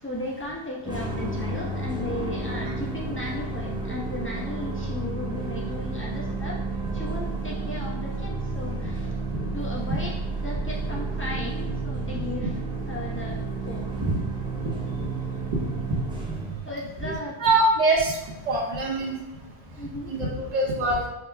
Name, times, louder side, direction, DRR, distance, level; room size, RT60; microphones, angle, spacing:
voice 1, 0.0-6.6 6.9-9.1 9.5-12.5 12.9-13.4 13.7-13.9 16.6-17.3 19.8-20.1, left 1 dB, 15° left, -5 dB, 0.8 m, -35 dB
sound 1, 0.8-16.6, right 3 dB, 5° right, 0.4 m, -31 dB
voice 2, 17.4-18.2 18.5-19.1 20.1-21.1, right 2 dB, 40° right, -3 dB, 0.9 m, -23 dB
4.9 x 2.2 x 3.4 m, 1.0 s
omnidirectional pair, 1.1 m